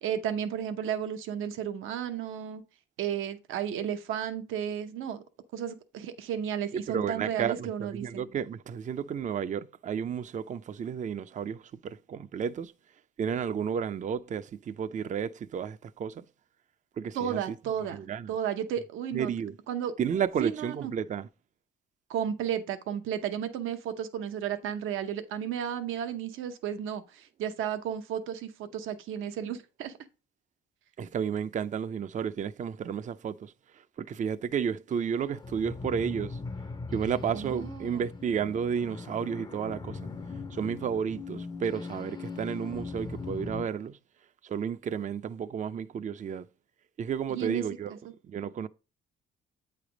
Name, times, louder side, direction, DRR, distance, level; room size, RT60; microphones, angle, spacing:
voice 1, 0.0-2.6 3.0-5.2 5.5-8.2 17.1-19.3 19.7-19.9 20.4-20.9 22.1-29.9 37.3-38.0 47.3-47.6, right 9 dB, 90° right, 0.8 m, -33 dB
voice 2, 6.9-12.7 13.2-16.2 17.0-17.4 17.8-18.3 19.1-19.6 20.0-21.3 31.0-36.4 36.9-40.0 40.5-44.0 44.4-46.5 47.0-48.0 48.2-48.7, right 7 dB, 40° right, 0.4 m, -32 dB
sound 1, 34.9-43.6, left 4 dB, 20° left, 0.5 m, -40 dB
8.5 x 3.3 x 5.0 m
cardioid pair, 90°, 20 cm